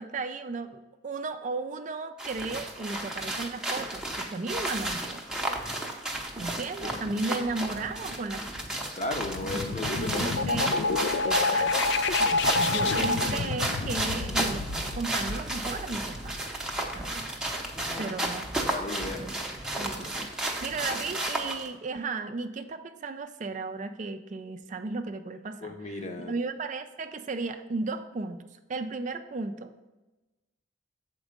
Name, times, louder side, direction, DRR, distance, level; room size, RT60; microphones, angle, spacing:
voice 1, 0.0-5.2 6.4-8.6 9.5-9.6 10.0-10.8 11.2-11.8 12.6-16.4 16.9-17.3 18.0-18.5 19.2-19.3 19.8-28.4 28.7-29.7, right 3 dB, 40° right, 8 dB, 0.4 m, -35 dB
sound 1, 2.2-21.7, right 1 dB, 5° right, 0.7 m, -33 dB
voice 2, 6.8-7.4 8.9-10.5 17.7-18.1 18.6-19.3 25.6-26.3, left 2 dB, 35° left, 5 dB, 0.7 m, -36 dB
sound 2, 9.0-16.6, left 3 dB, 65° left, 0.4 m, -29 dB
7.2 x 4.4 x 5.1 m, 1.1 s
head